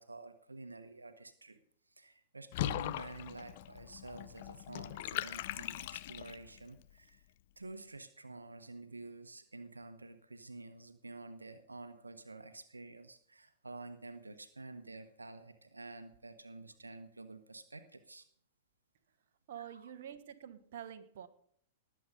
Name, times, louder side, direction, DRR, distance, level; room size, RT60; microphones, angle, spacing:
voice 1, 0.0-1.6 1.9-7.3 7.6-18.2 19.6-19.9, right 2 dB, 85° right, 10 dB, 1.1 m, -50 dB
Water / Bathtub (filling or washing), 2.5-6.6, left 15 dB, 50° left, 0.5 m, -40 dB
voice 2, 19.5-21.3, right 9 dB, 55° right, 9 dB, 1.2 m, -47 dB
19.5 x 7.8 x 5.4 m, 0.65 s
figure-of-eight pair, 105°, 0 cm